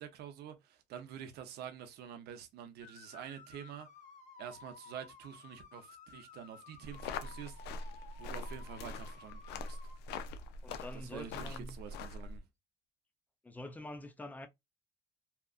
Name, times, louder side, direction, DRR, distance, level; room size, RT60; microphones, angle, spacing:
voice 1, 0.0-3.9 4.4-7.6 8.2-9.8 10.9-12.4, right 9 dB, 75° right, 0.6 m, -47 dB
sound 1, 2.8-10.0, left 4 dB, 45° left, 0.7 m, -55 dB
sound 2, 6.8-12.4, left 3 dB, 85° left, 0.4 m, -43 dB
voice 2, 10.6-11.8 13.4-14.5, left 1 dB, 10° left, 0.5 m, -46 dB
2.8 x 2.4 x 2.3 m
cardioid pair, 110°, 17 cm